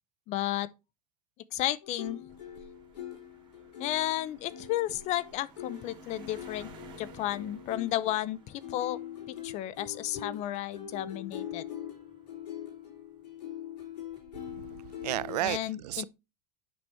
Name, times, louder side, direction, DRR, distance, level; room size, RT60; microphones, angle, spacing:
voice 1, 0.3-0.7 1.5-2.2 3.8-6.7 7.0-9.0 9.3-11.6 15.4-16.1, left 14 dB, 35° left, 0.6 m, -33 dB
sound 1, 1.8-15.4, left 9 dB, 90° left, 3.9 m, -43 dB
sound 2, 2.3-13.0 13.8-14.2, right 4 dB, 25° right, 3.2 m, -57 dB
voice 2, 14.4-16.1, right 15 dB, 85° right, 0.5 m, -34 dB
9.2 x 5.9 x 3.1 m
supercardioid pair, 140°, 20 cm